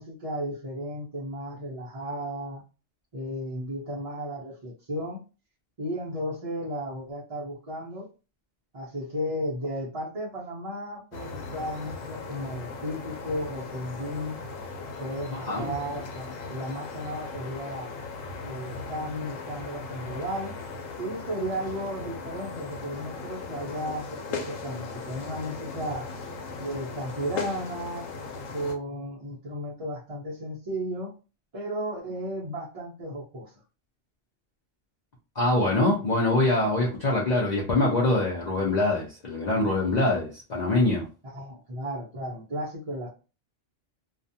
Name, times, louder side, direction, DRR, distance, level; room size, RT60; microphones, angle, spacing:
voice 1, 0.0-2.6 3.1-5.2 5.8-8.1 8.7-14.4 15.0-17.9 18.4-20.5 21.0-26.1 26.6-28.1 28.5-31.1 31.5-33.5 41.3-43.1, equal, 40° right, 0.5 m, -34 dB
sound 1, 11.1-28.7, left 4 dB, 85° left, 1.0 m, -38 dB
voice 2, 15.3-15.7 35.4-41.1, left 2 dB, 45° left, 0.6 m, -24 dB
2.4 x 2.2 x 2.6 m
omnidirectional pair, 1.3 m